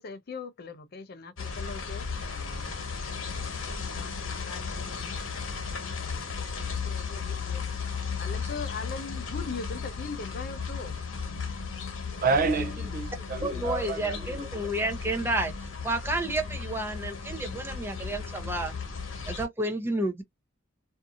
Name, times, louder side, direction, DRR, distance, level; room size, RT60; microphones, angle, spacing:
voice 1, 0.0-2.9 3.3-5.3 6.0-7.7 8.2-10.9 11.2-11.6, left 4 dB, 50° left, 0.5 m, -41 dB
sound 1, 1.4-19.5, left 5 dB, 90° left, 1.1 m, -35 dB
voice 2, 12.2-14.5, right 4 dB, 45° right, 0.5 m, -29 dB
voice 3, 13.4-15.5 15.8-18.7 19.3-20.2, right 1 dB, 10° right, 0.7 m, -30 dB
2.6 x 2.6 x 2.5 m
head